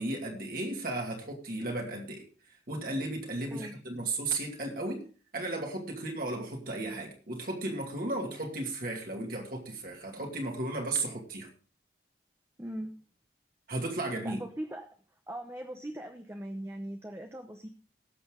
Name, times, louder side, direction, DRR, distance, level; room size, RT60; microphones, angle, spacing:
voice 1, 0.0-2.2 2.7-5.0 5.3-11.5 13.7-14.4, right 2 dB, 50° right, 0 dB, 2.4 m, -34 dB
voice 2, 12.6-13.0 14.2-14.9 15.3-17.7, right 1 dB, 15° right, 4 dB, 0.9 m, -40 dB
18.5 x 6.9 x 3.7 m, 0.38 s
head